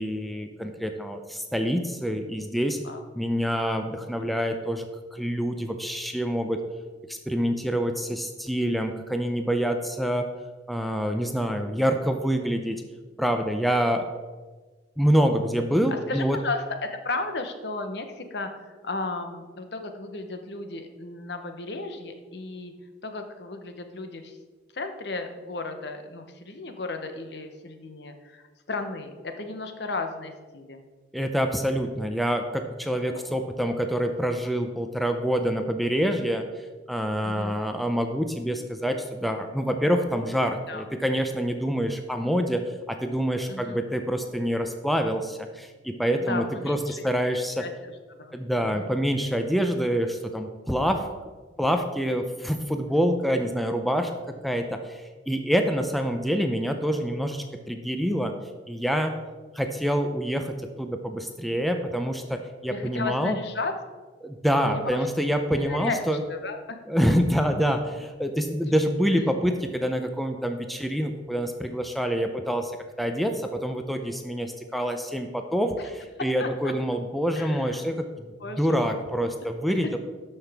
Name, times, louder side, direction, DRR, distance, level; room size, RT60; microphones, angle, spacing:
voice 1, 0.0-2.8 3.1-4.9 5.1-6.6 7.1-10.3 10.7-12.8 13.2-14.3 15.0-16.4 31.1-47.6 48.3-51.1 51.6-54.1 54.4-58.4 58.7-59.1 59.5-63.4 64.2-66.2 66.9-72.7 73.0-80.0, equal, ahead, 5 dB, 0.5 m, -26 dB
voice 2, 16.1-22.7 23.0-24.4 24.7-30.8 33.2-33.4 37.2-37.6 40.7-40.8 43.5-43.8 46.2-46.9 47.6-47.7 48.1-48.9 62.7-63.7 64.6-64.9 65.7-66.8 76.4-76.7 77.3-77.8 78.4-79.0, left 3 dB, 60° left, 7 dB, 0.8 m, -34 dB
12.5 x 5.6 x 3.5 m, 1.3 s
head